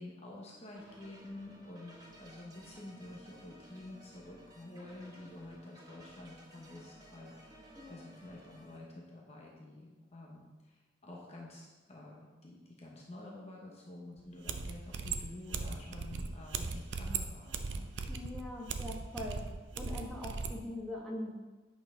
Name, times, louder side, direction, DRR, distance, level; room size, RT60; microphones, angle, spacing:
voice 1, 0.0-17.8, left 2 dB, 35° left, -2 dB, 0.9 m, -49 dB
sound 1, 0.8-8.8, equal, 20° right, 1.0 m, -56 dB
sound 2, 14.2-14.3 14.5-20.6, right 4 dB, 70° right, 0.5 m, -38 dB
voice 2, 18.1-19.4 19.7-21.3, left 1 dB, ahead, -5 dB, 1.3 m, -42 dB
8.2 x 6.0 x 3.7 m, 1.2 s
head